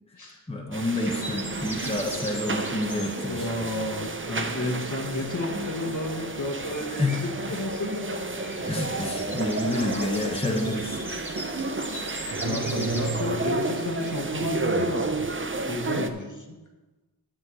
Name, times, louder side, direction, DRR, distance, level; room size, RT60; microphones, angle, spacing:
voice 1, 0.5-3.5 7.0-7.2 8.6-11.0, left 1 dB, 15° left, 0 dB, 1.3 m, -28 dB
sound 1, 0.7-16.1, right 3 dB, 30° right, 0.7 m, -31 dB
sound 2, 1.0-13.5, right 1 dB, 5° right, 1.5 m, -41 dB
voice 2, 3.3-8.2 10.5-10.8 12.4-15.2 15.7-16.6, left 2 dB, 50° left, 1 dB, 1.6 m, -32 dB
9.9 x 4.5 x 7.8 m, 1.2 s
wide cardioid pair, 60°, 38 cm